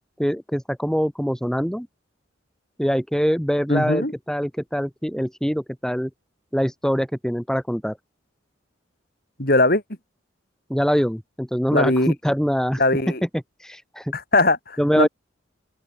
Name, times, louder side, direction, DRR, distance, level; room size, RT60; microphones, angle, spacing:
voice 1, 0.2-1.9 2.8-6.1 6.5-8.0 10.7-12.8 13.6-14.1 14.8-15.1, equal, 5° left, 3.5 m, -23 dB
voice 2, 3.7-4.1 9.4-9.8 11.7-12.1 12.8-13.2 14.1-15.1, left 2 dB, 50° left, 4.9 m, -20 dB
open air
head